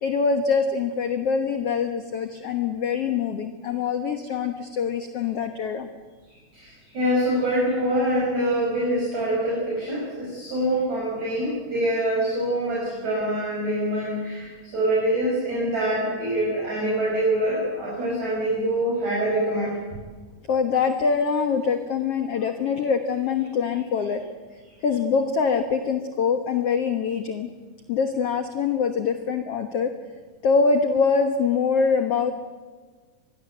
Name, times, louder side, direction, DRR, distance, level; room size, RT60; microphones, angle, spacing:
voice 1, 0.0-5.9 20.5-24.2 24.8-27.5 27.9-29.9 30.4-32.3, left 5 dB, 60° left, 7 dB, 1.6 m, -24 dB
voice 2, 6.5-19.8, right 1 dB, 45° right, -5 dB, 7.3 m, -25 dB
25.5 x 21.0 x 7.9 m, 1.5 s
omnidirectional pair, 4.4 m